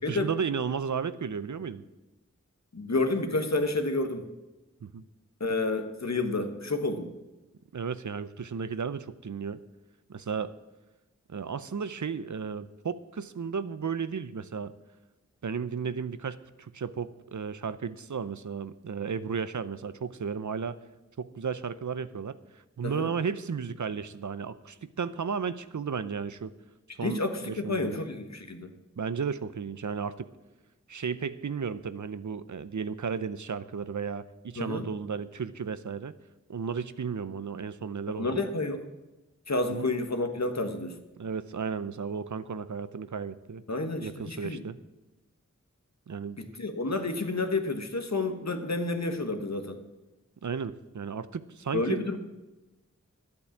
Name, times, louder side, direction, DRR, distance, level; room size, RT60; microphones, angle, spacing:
voice 1, 0.0-1.8 4.8-5.0 7.7-9.6 10.1-10.5 11.3-14.7 15.4-20.8 21.2-26.5 27.0-27.9 29.0-30.3 30.9-36.1 36.5-38.4 39.7-39.9 41.2-43.6 44.0-44.8 46.1-46.4 50.4-52.0, right 6 dB, 75° right, 14 dB, 0.7 m, -34 dB
voice 2, 2.7-4.2 5.4-7.1 22.8-23.1 27.0-28.7 34.6-34.9 38.1-38.8 39.5-41.0 43.7-44.6 46.4-49.8 51.7-52.2, left 2 dB, 60° left, 7 dB, 1.4 m, -30 dB
11.5 x 8.6 x 7.3 m, 1.1 s
wide cardioid pair, 45°, 30 cm